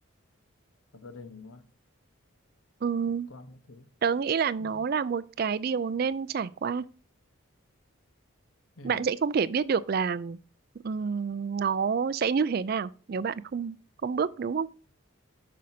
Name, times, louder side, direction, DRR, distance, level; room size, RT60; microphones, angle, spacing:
voice 1, 0.9-1.7 3.1-3.9 4.6-4.9 8.8-9.0, left 3 dB, 80° left, 1.0 m, -47 dB
voice 2, 2.8-3.3 4.0-6.8 8.8-10.4 10.8-13.8 14.0-14.7, right 6 dB, 45° right, 0.3 m, -28 dB
8.4 x 6.3 x 2.7 m
head